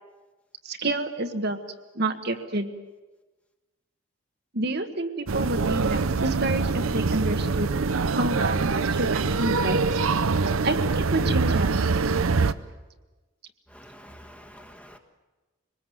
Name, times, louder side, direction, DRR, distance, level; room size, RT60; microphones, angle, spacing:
voice 1, 0.6-1.6 1.9-2.7 4.5-7.7 8.1-9.8 10.6-12.0, right 2 dB, 50° right, 6 dB, 1.4 m, -29 dB
sound 1, 5.3-12.5, right 4 dB, 85° right, 0.7 m, -24 dB
voice 2, 13.7-15.0, equal, 5° left, 4 dB, 1.5 m, -47 dB
24.5 x 20.0 x 7.9 m, 1.2 s
head